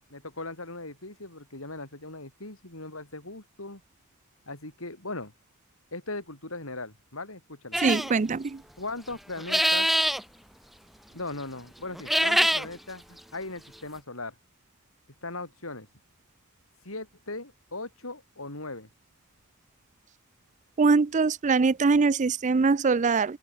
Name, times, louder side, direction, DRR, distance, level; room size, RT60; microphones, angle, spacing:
voice 1, 0.1-3.8 4.5-5.3 5.9-7.8 8.8-9.9 11.1-14.3 15.2-15.9 16.8-18.9, left 2 dB, 75° left, 6.7 m, -38 dB
sound 1, 7.7-8.1 9.4-10.2 11.9-12.7, equal, ahead, 2.4 m, -24 dB
voice 2, 7.8-8.4 20.8-23.4, right 4 dB, 35° right, 0.5 m, -22 dB
open air
head